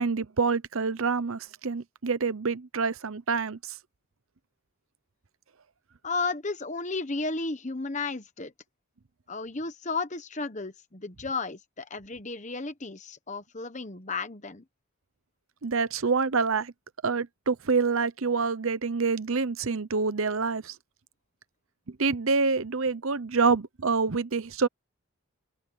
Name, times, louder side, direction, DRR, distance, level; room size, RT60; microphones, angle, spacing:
voice 1, 0.0-3.6 15.6-16.7 17.0-20.7 22.0-24.7, right 4 dB, 70° right, 0.8 m, -26 dB
voice 2, 6.0-8.5 9.3-14.6, left 3 dB, 35° left, 1.1 m, -33 dB
open air
head